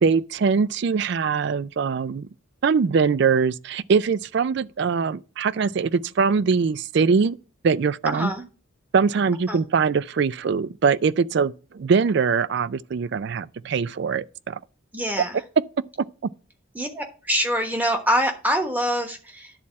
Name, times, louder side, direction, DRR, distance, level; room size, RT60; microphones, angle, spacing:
voice 1, 0.0-2.3 2.6-7.4 7.6-8.3 8.9-14.6, right 5 dB, 55° right, 0.3 m, -22 dB
voice 2, 8.1-8.4 9.5-9.6 14.9-15.4 16.7-19.5, equal, 10° right, 1.2 m, -25 dB
10.5 x 4.2 x 7.4 m
head